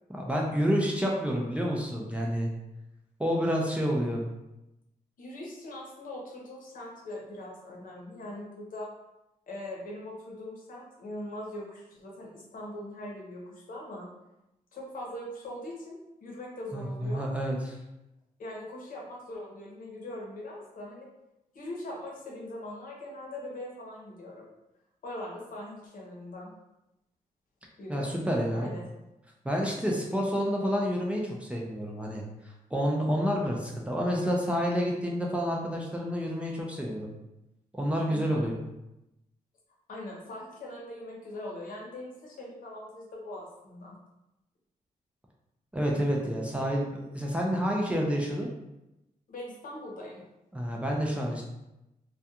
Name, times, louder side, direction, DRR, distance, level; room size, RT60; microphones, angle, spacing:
voice 1, 0.1-2.5 3.2-4.2 16.7-17.8 27.9-28.7 29.4-37.1 37.7-38.5 45.7-48.5 50.5-51.4, equal, 10° right, -2 dB, 0.4 m, -29 dB
voice 2, 5.2-8.9 9.5-14.1 14.7-17.3 18.4-21.1 21.5-24.5 25.0-26.5 27.8-28.1 28.5-28.8 38.1-38.5 39.9-44.0 49.3-50.2, left 1 dB, 65° left, -2 dB, 0.8 m, -41 dB
2.3 x 2.3 x 2.8 m, 0.91 s
wide cardioid pair, 125°, 15 cm